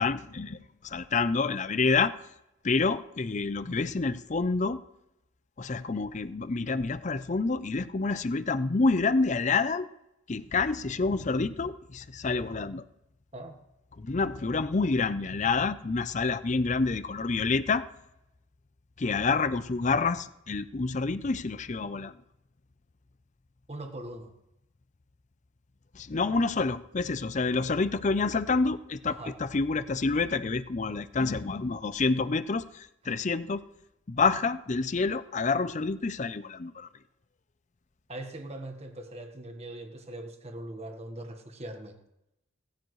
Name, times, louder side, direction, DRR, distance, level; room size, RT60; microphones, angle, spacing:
voice 1, 0.0-2.1 2.6-4.8 5.6-9.9 10.3-12.8 14.0-17.9 19.0-22.2 25.9-33.7 34.1-36.9, left 4 dB, 35° left, 14 dB, 0.5 m, -28 dB
voice 2, 23.7-24.4 29.0-29.4 33.0-33.2 38.1-42.0, right 1 dB, 30° right, 5 dB, 1.4 m, -41 dB
18.0 x 14.5 x 3.2 m, 0.87 s
head